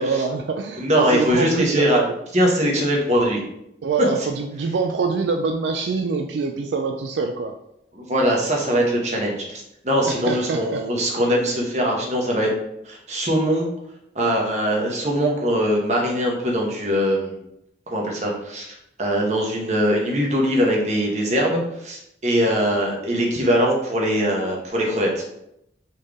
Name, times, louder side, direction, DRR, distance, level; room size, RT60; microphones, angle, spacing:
voice 1, 0.0-2.2 3.8-7.5 10.1-10.8, right 4 dB, 80° right, 4 dB, 0.4 m, -25 dB
voice 2, 0.8-2.0 2.3-3.4 7.9-12.5 12.8-13.7 14.1-17.3 17.9-25.2, equal, 40° right, -1 dB, 1.0 m, -21 dB
4.3 x 3.3 x 3.6 m, 0.80 s
head